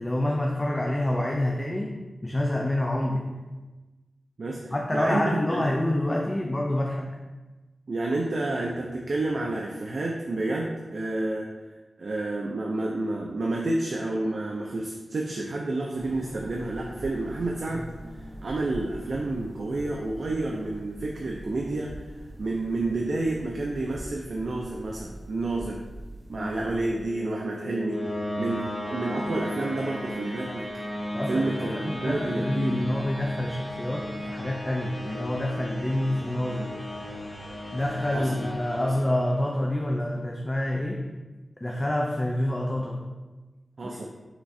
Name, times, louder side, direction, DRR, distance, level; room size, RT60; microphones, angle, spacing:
voice 1, 0.0-3.4 4.7-7.2 26.4-26.7 31.1-36.7 37.7-41.1 41.6-43.1 43.8-44.0, left 1 dB, 20° left, 0 dB, 0.4 m, -27 dB
voice 2, 4.4-5.6 7.9-11.5 12.0-17.9 18.4-21.9 22.4-25.8 26.3-28.1 28.4-30.7 31.3-32.8 38.1-38.3 38.8-38.9 43.8-44.1, right 2 dB, 65° right, -1 dB, 0.5 m, -30 dB
sound 1, 15.9-27.0, right 1 dB, 50° right, 1.1 m, -43 dB
sound 2, 26.6-39.6, left 1 dB, 40° left, 1.0 m, -35 dB
5.8 x 3.1 x 2.7 m, 1.2 s
wide cardioid pair, 90°, 0 cm